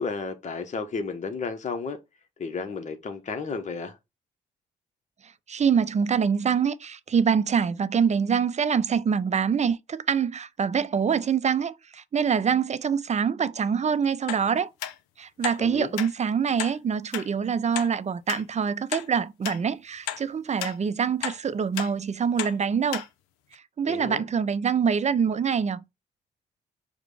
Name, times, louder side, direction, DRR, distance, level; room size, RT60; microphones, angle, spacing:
voice 1, 0.0-2.0 2.4-3.9 15.6-15.9 23.8-24.3, left 4 dB, 35° left, 0.8 m, -32 dB
voice 2, 5.5-14.7 15.2-23.0 23.8-25.8, right 6 dB, 35° right, 0.5 m, -25 dB
sound 1, 14.3-14.4 14.8-14.9 15.4-15.6 16.0-16.1 16.6-16.8 17.1-17.3 17.7-17.9 18.3-18.4 18.9-19.1 19.4-19.6 20.1-20.2 20.6-20.8 21.2-21.4 21.8-21.9 22.4-22.5 22.9-23.1 23.5-23.6, left 11 dB, 85° left, 0.5 m, -32 dB
4.9 x 2.2 x 4.7 m
hypercardioid pair, 45°, 20 cm